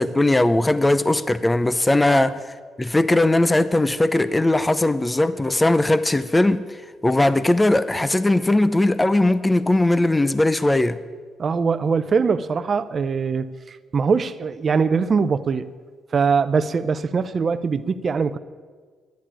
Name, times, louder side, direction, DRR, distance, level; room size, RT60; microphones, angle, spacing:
voice 1, 0.0-2.4 2.8-6.6 7.0-11.0, left 2 dB, 15° left, 0.6 m, -19 dB
voice 2, 11.4-13.5 13.9-15.7 16.1-18.4, right 5 dB, 45° right, 0.6 m, -22 dB
11.5 x 10.5 x 8.6 m
cardioid pair, 90°, 0 cm